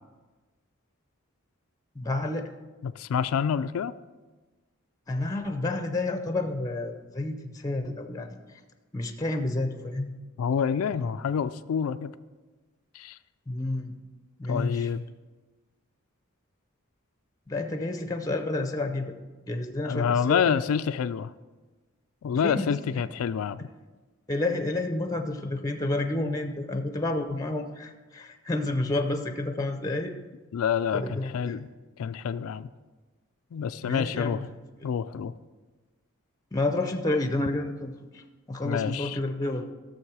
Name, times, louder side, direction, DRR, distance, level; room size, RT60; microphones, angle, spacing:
voice 1, 2.0-2.5 5.1-8.4 8.9-10.1 13.5-13.9 14.4-14.9 17.5-19.1 19.5-20.6 22.4-22.7 24.3-30.1 30.9-31.6 33.8-34.4 36.5-38.2 38.5-39.6, left 2 dB, 15° left, 6 dB, 0.5 m, -30 dB
voice 2, 2.8-3.9 10.4-12.1 12.9-13.2 14.5-15.0 19.8-21.3 22.2-23.7 30.5-31.7 32.0-32.7 33.5-34.4 34.8-35.3 38.6-39.2, left 7 dB, 70° left, 13 dB, 0.3 m, -27 dB
13.5 x 6.5 x 4.8 m, 1.3 s
head